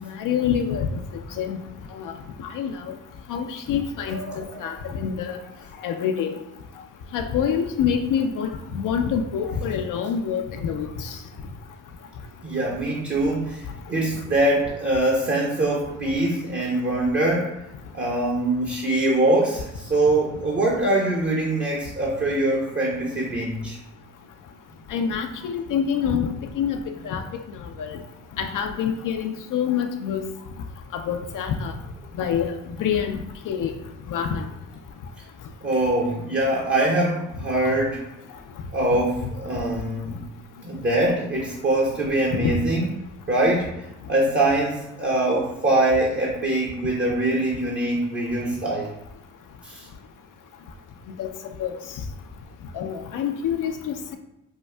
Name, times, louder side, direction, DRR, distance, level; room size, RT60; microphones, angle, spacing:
voice 1, 0.0-0.9 1.4-1.6 1.9-2.1 2.5-2.9 3.3-5.4 5.8-6.3 7.1-11.2 24.9-26.3 26.6-26.8 27.0-27.2 27.8-28.0 28.4-30.3 30.9-31.7 32.2-32.5 32.8-33.7 34.1-34.5 42.4-42.6 51.2-51.3 51.6-51.8 52.7-54.2, left 7 dB, 60° left, 5 dB, 0.5 m, -26 dB
voice 2, 4.1-4.7 12.4-17.6 17.9-23.8 35.6-38.0 38.7-40.2 40.6-42.9 43.3-43.7 44.1-48.9 49.6-49.9, right 1 dB, 30° right, -3 dB, 0.9 m, -23 dB
5.2 x 2.3 x 2.2 m, 0.88 s
hypercardioid pair, 50°, 37 cm